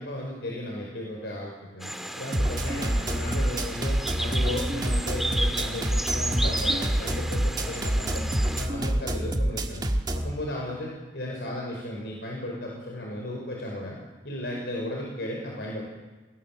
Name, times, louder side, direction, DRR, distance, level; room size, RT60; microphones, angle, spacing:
voice 1, 0.0-9.9 10.1-14.0 14.2-15.8, left 1 dB, 65° left, -1 dB, 5.3 m, -35 dB
sound 1, 1.8-8.7, right 1 dB, ahead, 1.8 m, -33 dB
sound 2, 2.3-10.3, right 1 dB, 25° right, 1.7 m, -27 dB
29.0 x 21.5 x 7.5 m, 1.2 s
head